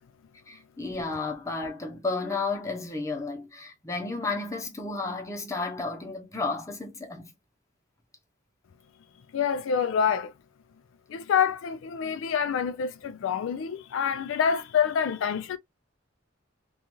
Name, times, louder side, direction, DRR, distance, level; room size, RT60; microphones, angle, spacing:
voice 1, 0.5-7.3, left 3 dB, 15° left, 0.8 m, -32 dB
voice 2, 9.3-10.3 11.1-15.6, left 7 dB, 85° left, 0.4 m, -27 dB
2.5 x 2.4 x 2.9 m
head